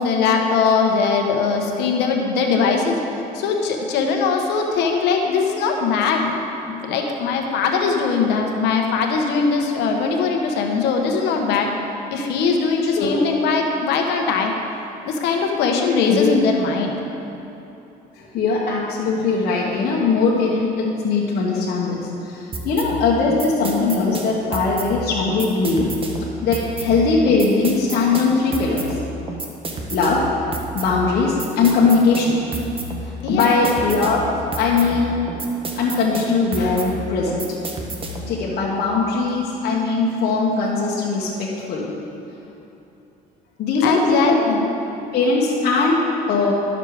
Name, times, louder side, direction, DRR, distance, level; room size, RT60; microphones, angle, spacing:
voice 1, 0.0-3.0 3.3-6.3 6.7-11.7 12.1-14.5 15.1-16.9 33.2-33.6 43.8-44.6, left 5 dB, 85° left, 2 dB, 1.2 m, -20 dB
voice 2, 13.0-13.3 16.1-16.3 18.2-25.9 26.4-28.9 29.9-30.2 30.7-32.4 33.0-35.1 35.8-37.4 38.3-41.9 43.6-44.4 45.1-46.5, left 4 dB, 65° left, -5 dB, 1.4 m, -20 dB
sound 1, 22.5-38.4, right 2 dB, 35° right, 1.2 m, -31 dB
11.5 x 6.6 x 4.9 m, 3.0 s
cardioid pair, 110°, 17 cm